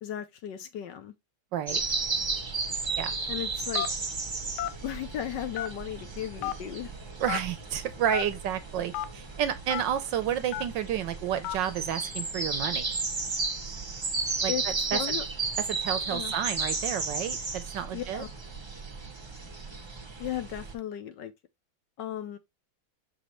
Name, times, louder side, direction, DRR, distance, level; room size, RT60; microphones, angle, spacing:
voice 1, 0.0-1.1 3.3-3.9 4.8-6.9 14.5-15.2 16.1-16.3 17.9-18.3 20.2-21.3 22.0-22.4, left 11 dB, 70° left, 1.2 m, -35 dB
sound 1, 1.7-20.7, right 4 dB, 30° right, 0.5 m, -34 dB
Telephone, 3.8-4.1 4.6-4.8 5.5-5.9 6.4-6.5 7.3-7.4 8.1-8.3 8.9-9.1 9.7-9.8 10.5-10.8 11.4-11.6, left 12 dB, 90° left, 1.5 m, -31 dB
voice 2, 7.2-13.0 14.4-15.2 15.7-18.2, right 9 dB, 70° right, 1.2 m, -31 dB
6.3 x 5.3 x 3.0 m
omnidirectional pair, 2.3 m